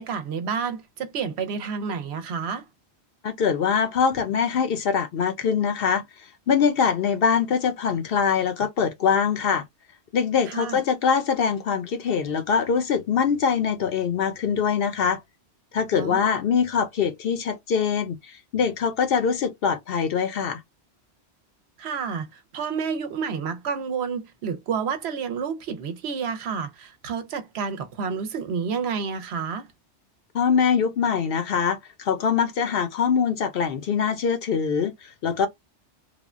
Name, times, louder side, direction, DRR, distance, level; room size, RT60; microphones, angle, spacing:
voice 1, 0.0-2.7 10.5-10.8 15.9-16.4 21.8-29.7, right 6 dB, 70° right, 0.9 m, -30 dB
voice 2, 3.2-6.0 6.5-9.6 10.1-15.2 15.7-20.6 30.3-35.5, left 6 dB, 60° left, 0.7 m, -23 dB
3.2 x 2.1 x 2.4 m
omnidirectional pair, 1.2 m